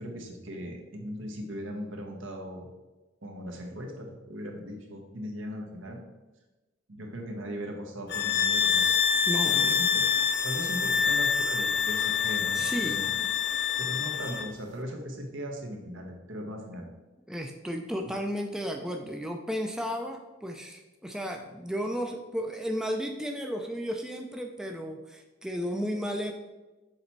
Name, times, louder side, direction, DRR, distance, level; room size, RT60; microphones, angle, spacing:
voice 1, 0.0-2.7 3.2-6.0 6.9-10.1 10.4-13.2 13.8-16.9, equal, 75° right, 2 dB, 1.2 m, -39 dB
sound 1, 8.1-14.5, left 6 dB, 55° left, 0.5 m, -26 dB
voice 2, 9.3-9.8 12.5-13.0 17.3-26.3, equal, 5° right, 3 dB, 0.4 m, -33 dB
6.5 x 4.2 x 4.5 m, 1.1 s
head